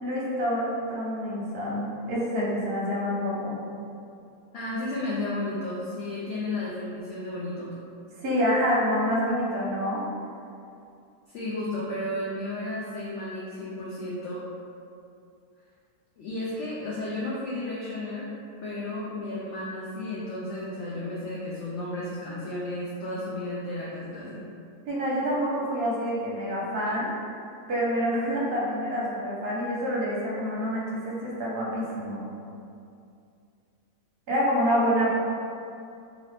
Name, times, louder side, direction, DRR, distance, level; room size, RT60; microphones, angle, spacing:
voice 1, 0.0-3.6 8.2-10.0 24.9-27.1 27.7-32.3 34.3-35.1, equal, 50° right, -6 dB, 0.8 m, -27 dB
voice 2, 4.5-7.7 11.3-14.4 16.2-18.3 18.6-24.5, left 1 dB, 65° left, -7 dB, 0.7 m, -33 dB
2.9 x 2.7 x 3.2 m, 2.5 s
omnidirectional pair, 1.7 m